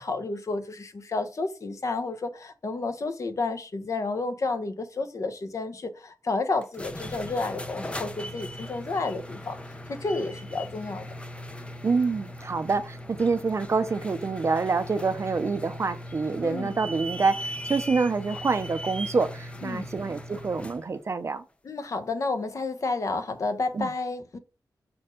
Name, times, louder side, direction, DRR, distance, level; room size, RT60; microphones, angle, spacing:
voice 1, 0.0-9.6 9.9-11.1 16.4-16.7 19.6-19.9 21.6-24.4, left 3 dB, 45° left, 0.9 m, -31 dB
sound 1, 6.6-20.9, equal, 15° left, 0.6 m, -39 dB
voice 2, 11.8-21.4 23.7-23.9, right 4 dB, 40° right, 0.6 m, -27 dB
6.4 x 4.3 x 5.1 m
wide cardioid pair, 180°, 7 cm